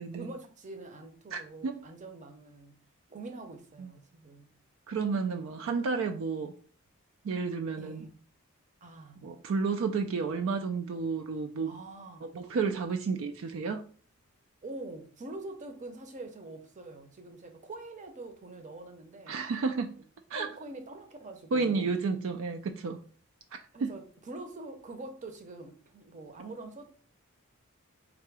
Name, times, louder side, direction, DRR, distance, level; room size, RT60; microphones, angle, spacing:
voice 1, 0.1-2.8 3.1-4.5 7.8-8.2 8.8-9.2 11.7-12.3 14.6-19.4 20.3-22.0 23.7-26.9, right 2 dB, 35° right, 0.7 m, -45 dB
voice 2, 1.3-1.8 3.8-3.9 4.9-6.5 7.2-8.1 9.2-11.7 12.2-13.8 19.3-20.0 20.3-20.5 21.5-23.0 23.5-23.9, right 4 dB, 65° right, 0.4 m, -31 dB
3.7 x 2.8 x 4.6 m
head